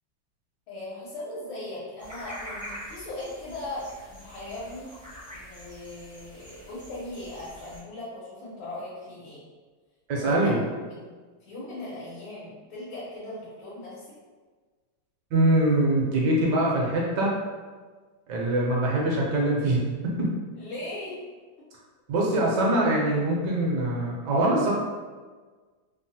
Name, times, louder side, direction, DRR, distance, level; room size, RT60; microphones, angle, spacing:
voice 1, 0.7-4.9 5.3-9.4 10.2-11.1 11.4-14.2 20.6-21.2, left 1 dB, 80° left, -8 dB, 1.5 m, -38 dB
sound 1, 2.0-7.8, equal, 25° right, 0.4 m, -44 dB
voice 2, 10.1-10.6 15.3-17.3 18.3-20.3 22.1-24.7, right 1 dB, 70° right, -3 dB, 1.1 m, -23 dB
3.4 x 2.0 x 2.6 m, 1.4 s
omnidirectional pair, 2.1 m